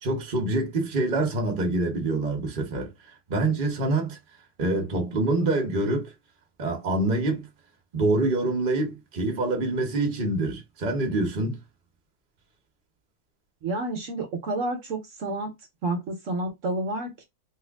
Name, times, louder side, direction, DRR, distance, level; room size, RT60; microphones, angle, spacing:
voice 1, 0.0-2.9 3.3-4.2 4.6-6.1 6.6-7.5 7.9-11.6, right 2 dB, 40° right, 1.0 m, -26 dB
voice 2, 13.6-15.5 15.8-17.2, right 2 dB, 65° right, 1.1 m, -30 dB
3.2 x 2.4 x 3.4 m
omnidirectional pair, 1.5 m